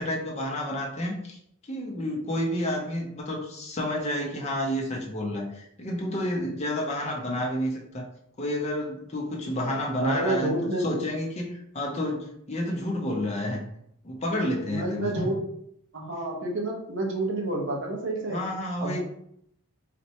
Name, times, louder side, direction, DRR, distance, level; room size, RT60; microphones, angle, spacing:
voice 1, 0.0-1.4 1.6-8.1 8.4-13.6 14.0-15.3 18.2-19.0, left 1 dB, 30° left, -1 dB, 0.6 m, -30 dB
voice 2, 10.0-11.0 14.7-15.4 15.9-18.4 18.8-19.0, right 1 dB, 55° right, -1 dB, 0.8 m, -29 dB
4.1 x 2.2 x 2.8 m, 0.72 s
head